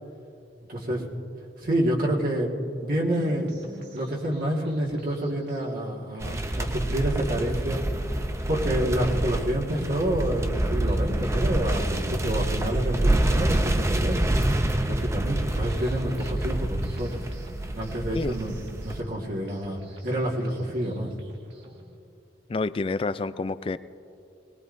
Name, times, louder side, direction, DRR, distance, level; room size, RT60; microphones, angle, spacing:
voice 1, 0.7-1.1 1.6-3.5 3.9-7.8 8.5-14.3 14.8-17.1 17.7-18.6 18.8-21.1, right 1 dB, 50° right, -3 dB, 1.7 m, -28 dB
sound 1, 3.1-22.0, right 1 dB, 75° right, 1.7 m, -50 dB
sound 2, 6.2-19.0, right 1 dB, 15° right, 0.5 m, -27 dB
voice 2, 22.5-23.8, left 3 dB, 30° left, 14 dB, 0.3 m, -28 dB
21.0 x 20.0 x 2.6 m, 2.6 s
head